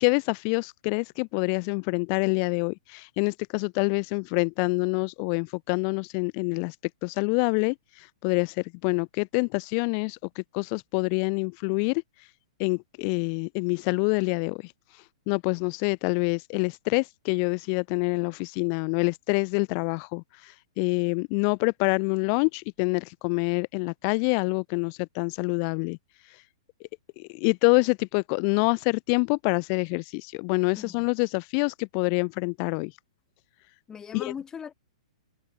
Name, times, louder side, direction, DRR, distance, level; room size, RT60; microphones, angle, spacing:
voice 1, 0.0-6.8 7.0-12.0 12.6-14.7 15.3-26.0 27.2-32.9 34.1-34.2, left 40 dB or more, 40° left, 0.6 m, -26 dB
voice 2, 33.9-34.7, left 7 dB, 20° left, 7.4 m, -39 dB
figure-of-eight pair, 115°, 3 cm